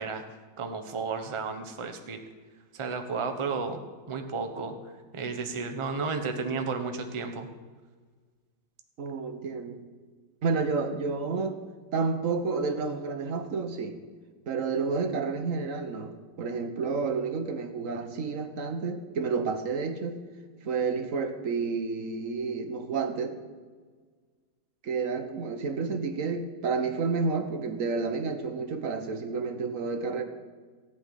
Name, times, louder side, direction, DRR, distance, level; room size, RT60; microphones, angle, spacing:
voice 1, 0.0-2.2 2.7-3.8 4.1-7.5, right 4 dB, 20° right, 5 dB, 0.8 m, -33 dB
voice 2, 9.0-9.8 10.4-11.6 11.9-14.0 14.5-16.1 16.4-20.2 20.6-23.4 24.8-30.2, right 4 dB, 50° right, 7 dB, 1.4 m, -30 dB
14.0 x 6.3 x 9.9 m, 1.5 s
omnidirectional pair, 2.1 m